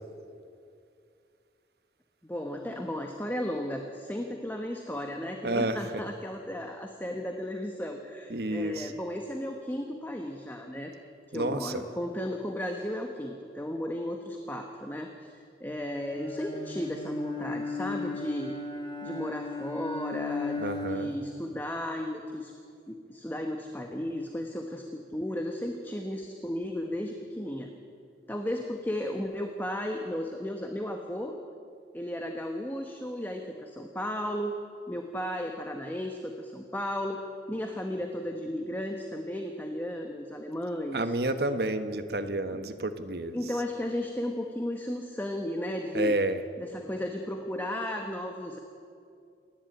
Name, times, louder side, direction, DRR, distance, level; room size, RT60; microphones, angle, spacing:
voice 1, 2.2-10.9 11.3-18.5 19.0-22.5 22.9-27.7 28.3-31.3 31.9-34.5 34.9-37.2 37.5-41.2 42.5-42.6 43.3-46.2 46.6-48.6, left 1 dB, 10° left, 3 dB, 1.1 m, -34 dB
voice 2, 5.4-6.1 8.3-8.9 11.3-11.8 20.6-21.2 40.9-43.6 45.9-46.4, right 2 dB, 60° right, 9 dB, 1.2 m, -30 dB
Bowed string instrument, 16.0-21.3, left 3 dB, 25° left, 2.7 m, -35 dB
27.5 x 11.0 x 9.0 m, 2.4 s
head